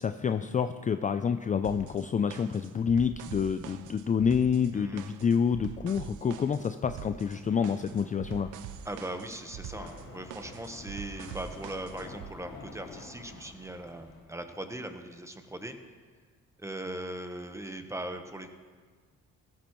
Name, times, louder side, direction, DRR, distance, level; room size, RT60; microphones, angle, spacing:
voice 1, 0.0-8.5, left 6 dB, 25° left, 10 dB, 0.4 m, -28 dB
sound 1, 1.6-12.3, right 10 dB, 80° right, 0.6 m, -45 dB
voice 2, 4.7-5.0 8.8-15.8 16.6-18.5, right 1 dB, 10° right, 6 dB, 1.1 m, -39 dB
sound 2, 7.2-14.2, left 3 dB, 85° left, 2.4 m, -49 dB
16.5 x 13.0 x 3.1 m, 1.5 s
cardioid pair, 90°, 30 cm